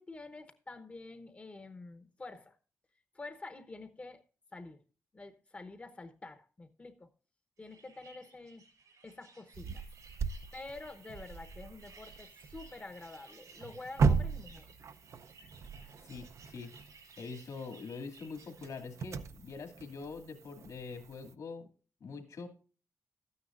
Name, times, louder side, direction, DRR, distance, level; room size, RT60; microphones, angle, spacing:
voice 1, 0.0-2.6 3.1-4.2 4.5-4.8 5.1-7.1 7.6-8.6 9.0-9.9 10.5-14.7, left 3 dB, 20° left, 9 dB, 0.9 m, -48 dB
sound 1, 7.6-18.8, right 4 dB, 85° right, 3.6 m, -59 dB
sound 2, 9.5-21.3, right 5 dB, 55° right, 0.6 m, -38 dB
voice 2, 16.0-16.7 17.2-21.7 22.0-22.5, left 4 dB, 70° left, 4 dB, 2.3 m, -44 dB
13.0 x 9.7 x 2.5 m, 0.37 s
wide cardioid pair, 175°, 6 cm